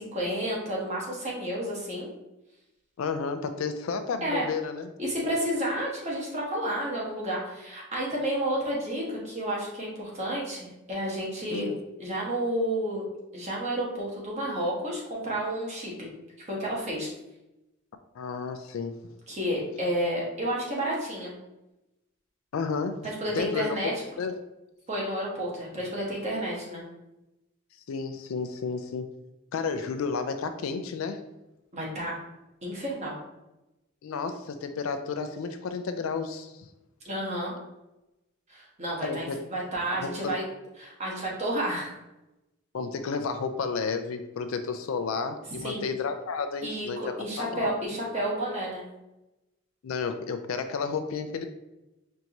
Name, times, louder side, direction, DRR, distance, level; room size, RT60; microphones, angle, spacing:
voice 1, 0.0-2.1 4.2-4.4 5.0-11.7 12.0-13.0 13.3-16.1 16.5-17.1 19.3-21.3 23.2-23.9 24.9-26.8 31.7-32.1 32.6-33.2 37.0-37.5 38.5-40.4 40.8-42.0 45.6-45.9 46.6-48.8, right 1 dB, 35° right, -4 dB, 1.1 m, -31 dB
voice 2, 3.0-4.9 11.5-11.8 18.2-18.9 22.5-23.0 23.3-24.4 27.9-29.1 29.5-31.2 34.0-36.7 39.0-39.4 40.0-40.3 42.7-47.7 49.8-51.4, left 5 dB, 75° left, 8 dB, 0.4 m, -32 dB
4.5 x 2.6 x 2.9 m, 0.96 s
head